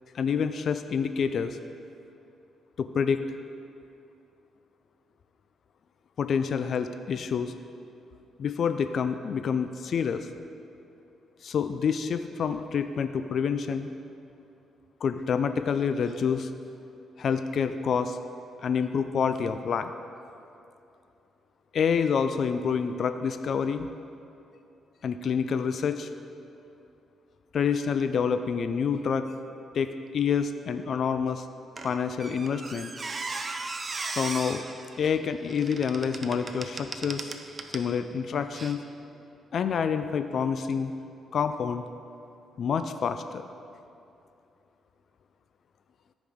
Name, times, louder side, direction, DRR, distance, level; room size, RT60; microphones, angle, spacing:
voice 1, 0.1-1.6 2.8-3.2 6.2-7.5 8.4-10.3 11.4-13.9 15.0-16.5 17.2-18.2 18.6-19.9 21.7-23.9 25.0-26.1 27.5-29.3 29.7-31.4 31.8-32.9 34.0-34.6 35.0-37.4 37.7-38.8 39.5-40.9 41.3-41.8 42.6-43.4, left 6 dB, 60° left, 9 dB, 0.4 m, -27 dB
Squeak, 31.8-37.9 38.5-38.7, right 3 dB, 30° right, 0.6 m, -37 dB
14.0 x 5.0 x 3.6 m, 2.7 s
cardioid pair, 90°, 0 cm